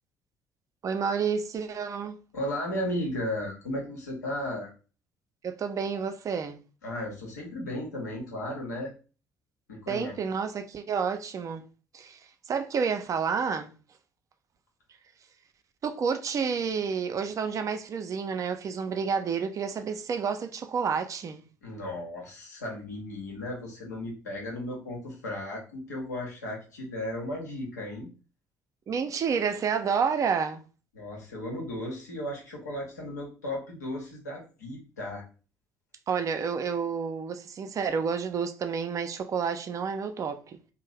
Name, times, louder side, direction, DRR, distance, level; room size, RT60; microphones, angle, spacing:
voice 1, 0.8-2.2 5.4-6.6 9.9-11.6 11.9-12.2 12.5-13.7 15.8-21.4 28.9-30.6 36.1-40.6, right 6 dB, 35° right, 0.4 m, -29 dB
voice 2, 2.3-4.7 6.8-8.9 9.7-10.2 21.6-28.1 30.9-35.2, left 1 dB, 80° left, 0.9 m, -35 dB
2.6 x 2.0 x 3.2 m
figure-of-eight pair, 50°, 9 cm